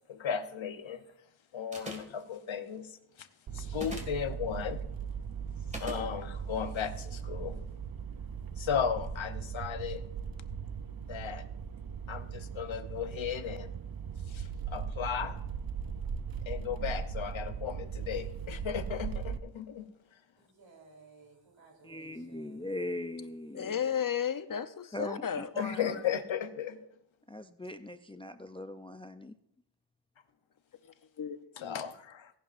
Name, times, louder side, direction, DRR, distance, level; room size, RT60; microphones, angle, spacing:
voice 1, 0.1-1.0 1.5-3.3 3.5-4.9 5.8-7.6 8.6-10.1 11.0-11.5 12.1-13.7 14.3-15.4 16.5-19.9 25.6-26.9 31.6-32.3, left 7 dB, 80° left, 0.9 m, -35 dB
sound 1, 1.7-2.2 3.7-4.2 5.7-6.0, equal, 15° right, 1.9 m, -40 dB
sound 2, 3.5-19.4, right 7 dB, 50° right, 0.6 m, -39 dB
voice 2, 20.4-22.6, right 3 dB, 75° right, 3.4 m, -58 dB
voice 3, 21.8-23.8 24.9-26.0 27.3-29.4, left 1 dB, 15° left, 0.4 m, -40 dB
voice 4, 23.5-25.5 31.2-31.8, left 8 dB, 45° left, 0.7 m, -33 dB
17.5 x 11.0 x 2.5 m
wide cardioid pair, 110°, 46 cm